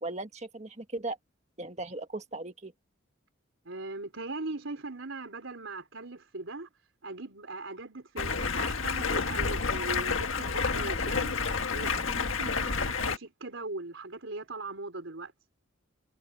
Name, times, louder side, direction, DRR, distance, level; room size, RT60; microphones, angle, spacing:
voice 1, 0.0-1.2 1.6-2.7, right 2 dB, 35° right, 1.7 m, -37 dB
voice 2, 3.7-6.7 7.0-11.3 11.7-15.3, right 2 dB, 70° right, 3.5 m, -39 dB
Stream, 8.2-13.2, left 5 dB, 75° left, 1.6 m, -30 dB
head